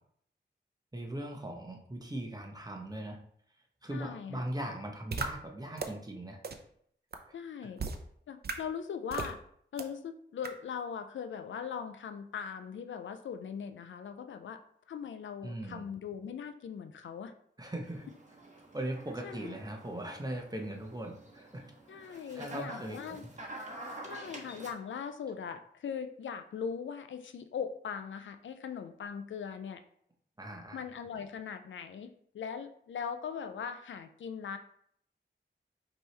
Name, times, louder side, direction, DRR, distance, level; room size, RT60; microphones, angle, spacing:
voice 1, 0.9-3.2 3.8-6.4 15.4-15.8 17.6-18.0 18.7-21.6 22.0-23.3 30.4-30.8, right 1 dB, 20° right, 1 dB, 1.0 m, -39 dB
voice 2, 3.9-4.4 7.3-7.8 8.3-9.4 9.7-14.6 14.9-17.3 19.2-19.5 21.9-23.3 24.1-29.8 30.7-34.6, left 7 dB, 90° left, 9 dB, 0.4 m, -40 dB
sound 1, 5.1-5.3 5.8-5.9 6.4-6.5 7.1-7.2 7.8-8.0 8.4-8.5 9.1-9.3 9.8-9.9 10.4-10.5, right 4 dB, 55° right, 0.6 m, -34 dB
sound 2, 17.8-24.7, right 1 dB, 40° right, 1.2 m, -48 dB
5.2 x 3.1 x 3.2 m, 0.66 s
cardioid pair, 60°, 19 cm